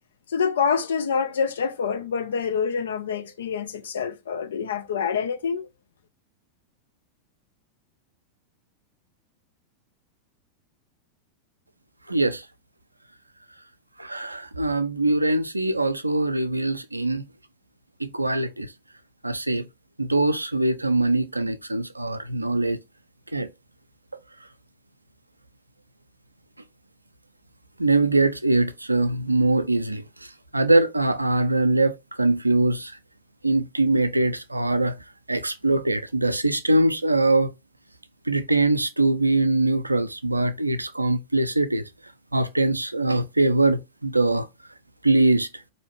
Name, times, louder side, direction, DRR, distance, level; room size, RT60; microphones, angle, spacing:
voice 1, 0.3-5.7, left 6 dB, 65° left, 0.6 m, -26 dB
voice 2, 12.1-12.4 14.0-17.3 18.0-18.7 19.2-19.6 20.0-22.8 23.3-23.5 27.8-30.0 30.5-32.9 33.4-34.9 35.3-37.5 38.3-41.8 42.3-44.4 45.0-45.5, right 2 dB, 85° right, 0.4 m, -22 dB
4.1 x 2.7 x 3.0 m
figure-of-eight pair, 90°, 0 cm